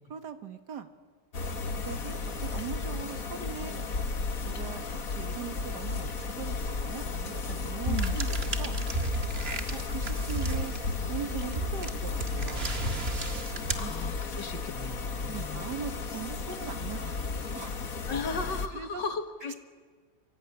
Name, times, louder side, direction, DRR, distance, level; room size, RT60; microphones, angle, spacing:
voice 1, 0.1-0.9 1.9-3.8 4.4-8.8 9.7-10.7 11.1-12.8 13.8-13.9 15.3-17.2 17.6-17.8 18.7-19.0, right 7 dB, 70° right, 9 dB, 2.2 m, -40 dB
sound 1, 1.3-18.7, left 4 dB, 55° left, 2.1 m, -34 dB
sound 2, 7.8-14.5, right 3 dB, 35° right, 1.9 m, -34 dB
voice 2, 13.7-15.7 18.1-19.6, left 4 dB, 85° left, 7 dB, 2.7 m, -36 dB
25.0 x 24.5 x 9.8 m, 1.5 s
omnidirectional pair, 1.9 m